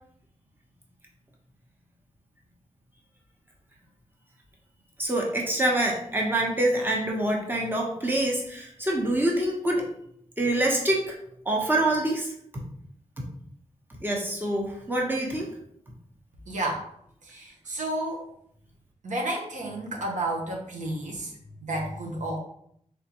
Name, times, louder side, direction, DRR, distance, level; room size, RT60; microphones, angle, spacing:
voice 1, 5.0-9.9 10.4-11.1 11.4-12.3 14.0-15.5, right 1 dB, 15° right, -1 dB, 1.0 m, -25 dB
voice 2, 16.5-16.9 17.2-18.3 19.0-22.4, right 1 dB, 75° right, -1 dB, 1.0 m, -31 dB
3.7 x 3.5 x 2.9 m, 0.69 s
wide cardioid pair, 80°, 13 cm